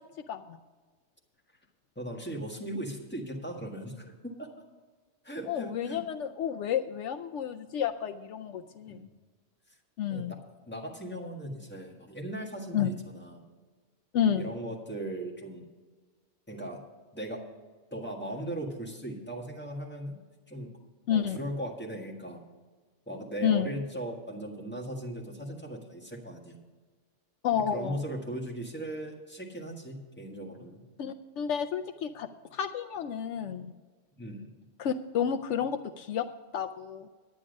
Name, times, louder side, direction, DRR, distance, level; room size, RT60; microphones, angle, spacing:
voice 1, 0.3-0.6 5.5-9.1 10.0-10.3 12.7-12.9 14.1-14.5 21.1-21.4 23.4-23.7 27.4-28.0 31.0-33.7 34.8-36.3 36.5-37.1, left 8 dB, 75° left, 8 dB, 0.9 m, -30 dB
voice 2, 1.9-4.5 5.2-6.0 8.9-9.1 10.1-10.4 10.6-13.4 14.3-15.6 16.5-16.8 17.1-17.4 17.9-20.1 20.5-20.7 21.1-22.4 23.1-26.6 27.7-30.8 34.2-34.5, right 1 dB, 10° left, -1 dB, 1.6 m, -38 dB
10.0 x 9.9 x 5.2 m, 1.4 s
omnidirectional pair, 1.3 m